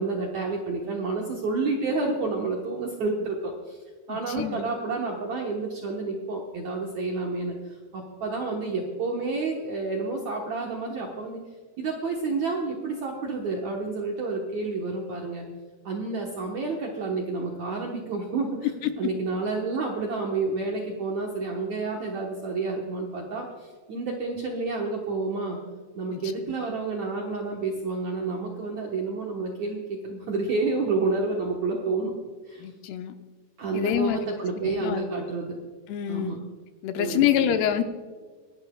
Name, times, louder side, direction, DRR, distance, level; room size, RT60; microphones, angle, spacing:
voice 1, 0.0-3.8 4.1-7.6 7.9-11.4 11.8-15.5 15.8-18.5 19.0-25.6 26.0-32.1 32.5-32.6 33.6-35.6 36.1-36.4 37.0-37.6, right 3 dB, 65° right, -1 dB, 1.8 m, -29 dB
voice 2, 4.1-4.6 26.1-26.2 26.5-26.6 32.6-33.2 33.7-34.2 34.5-35.0 35.9-36.4 36.8-37.8, left 10 dB, 80° left, 7 dB, 2.6 m, -26 dB
25.5 x 11.5 x 2.3 m, 1.5 s
omnidirectional pair, 5.0 m